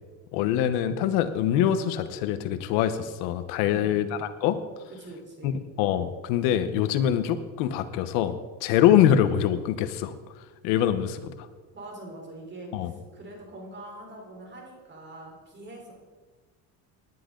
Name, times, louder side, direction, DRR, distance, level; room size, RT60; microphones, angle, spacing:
voice 1, 0.3-4.6 5.4-5.5 5.8-10.2 10.6-11.3 12.7-12.9, left 10 dB, 90° left, 11 dB, 1.2 m, -24 dB
voice 2, 3.6-4.0 5.0-5.6 11.7-15.9, right 1 dB, 30° right, 0 dB, 4.3 m, -43 dB
18.5 x 10.5 x 3.9 m, 1.4 s
cardioid pair, 110°, 37 cm